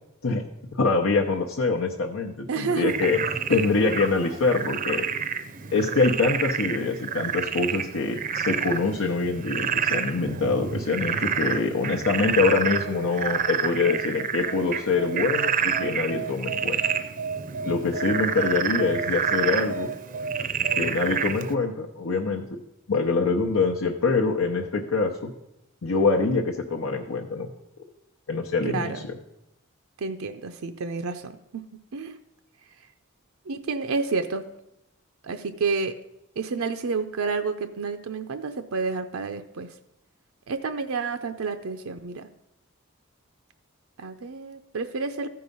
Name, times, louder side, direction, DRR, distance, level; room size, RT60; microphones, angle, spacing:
voice 1, 0.7-3.2 3.5-5.0 5.7-16.8 17.7-19.9 20.7-22.4 22.9-25.3 25.8-27.5 28.3-28.9, left 4 dB, 85° left, 0 dB, 0.8 m, -24 dB
voice 2, 2.5-3.0 3.5-3.6 28.6-29.0 30.0-31.6 31.9-32.2 33.5-34.4 35.2-35.9 36.4-39.7 40.5-42.3 44.0-45.3, right 4 dB, 85° right, 8 dB, 0.6 m, -29 dB
Frog, 2.9-21.5, right 7 dB, 40° right, 0.5 m, -29 dB
14.0 x 4.8 x 5.3 m, 0.85 s
head